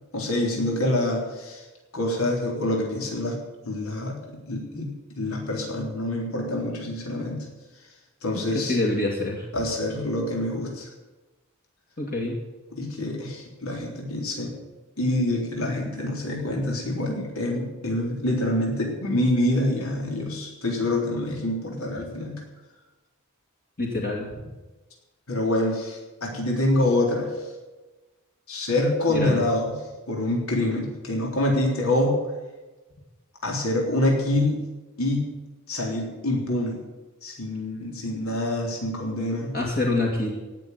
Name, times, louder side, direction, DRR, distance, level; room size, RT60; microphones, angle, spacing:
voice 1, 0.1-1.6 1.9-3.4 3.6-7.5 8.2-8.8 9.5-10.9 12.7-14.5 15.0-22.4 25.3-27.3 28.5-29.8 30.1-32.3 33.4-34.7 35.0-35.3 35.7-36.8 37.2-39.6, left 1 dB, 75° left, -1 dB, 3.7 m, -26 dB
voice 2, 8.5-9.4 12.0-12.3 23.8-24.3 29.1-29.4 39.5-40.4, left 2 dB, 45° left, -1 dB, 2.2 m, -26 dB
18.0 x 6.8 x 9.4 m, 1.2 s
head